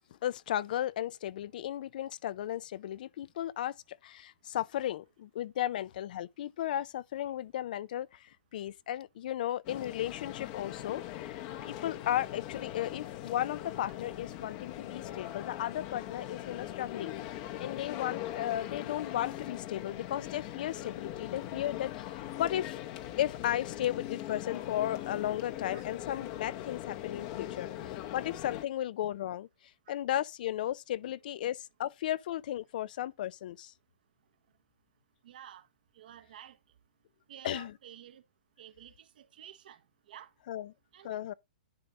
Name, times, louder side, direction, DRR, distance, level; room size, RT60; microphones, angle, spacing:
voice 1, 0.0-17.1 17.6-22.8 23.2-29.5 29.9-33.7 37.4-37.7 40.5-40.7 41.0-41.3, left 12 dB, 60° left, 0.4 m, -35 dB
sound 1, 9.6-28.6, left 13 dB, 40° left, 0.8 m, -41 dB
voice 2, 35.2-35.7 35.9-36.6 37.3-38.2 38.6-39.8 40.1-40.3 40.9-41.2, right 10 dB, 70° right, 1.0 m, -51 dB
10.5 x 3.6 x 4.0 m
hypercardioid pair, 135°, 5 cm